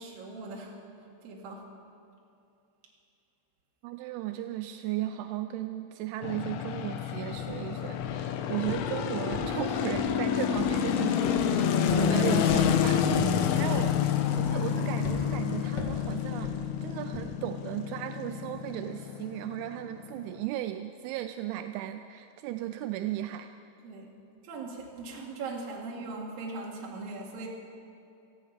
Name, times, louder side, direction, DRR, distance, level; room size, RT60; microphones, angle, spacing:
voice 1, 0.0-1.7 23.8-24.1 24.4-27.5, right 3 dB, 55° right, -2 dB, 3.4 m, -40 dB
voice 2, 3.8-14.0 14.4-23.5, right 13 dB, 85° right, 8 dB, 2.9 m, -36 dB
sound 1, 6.2-20.5, left 8 dB, 80° left, 2.3 m, -28 dB
sound 2, 7.4-7.5 8.0-8.3 8.7-8.9 9.3-10.2 10.6-10.8 11.2-11.5 11.9-12.1 12.5-12.7 13.1-13.4 13.7-14.0 14.4-14.7 15.0-15.2 15.8-16.0 16.4-16.6 17.1-17.3, left 3 dB, 65° left, 1.0 m, -37 dB
17.0 x 14.5 x 5.7 m, 2.7 s
omnidirectional pair, 5.4 m